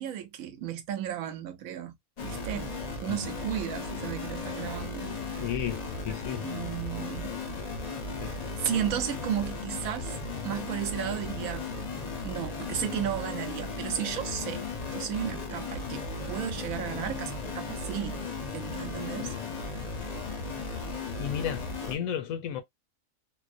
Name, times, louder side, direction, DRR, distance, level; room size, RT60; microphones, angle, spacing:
voice 1, 0.0-1.9 2.2-5.4 6.4-7.4 8.6-10.2 10.4-11.7 12.2-14.6 14.9-18.2 18.5-19.3, right 10 dB, 85° right, 1.1 m, -34 dB
sound 1, 2.2-22.0, left 3 dB, 45° left, 0.5 m, -36 dB
voice 2, 5.4-6.5 8.2-8.4 19.2-19.4 21.2-22.6, left 9 dB, 90° left, 1.0 m, -34 dB
2.5 x 2.0 x 2.4 m
omnidirectional pair, 1.4 m